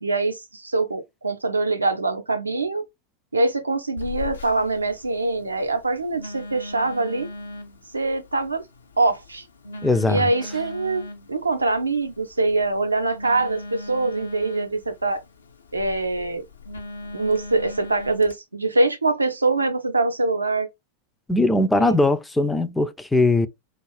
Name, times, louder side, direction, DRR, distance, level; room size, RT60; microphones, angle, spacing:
voice 1, 0.0-2.8 3.3-7.3 7.9-8.6 9.0-9.4 10.1-15.2 15.7-16.4 17.1-20.7 21.7-22.0, right 3 dB, 80° right, 0.5 m, -24 dB
Telephone, 4.0-18.3, left 2 dB, 75° left, 0.5 m, -39 dB
voice 2, 9.8-10.3 21.3-23.5, left 2 dB, 5° left, 0.3 m, -20 dB
2.4 x 2.3 x 3.1 m
figure-of-eight pair, 90°, 0 cm